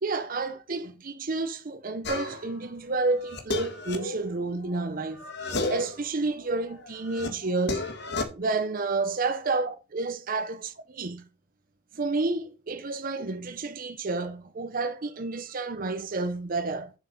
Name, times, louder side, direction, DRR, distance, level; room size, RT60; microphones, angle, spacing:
voice 1, 0.0-7.9 8.3-11.2 11.9-16.9, right 3 dB, 45° right, 0.7 m, -30 dB
sound 1, 2.0-2.6 3.0-4.9 5.2-6.0 6.4-8.2, left 2 dB, 60° left, 1.7 m, -33 dB
7.3 x 6.3 x 5.2 m
head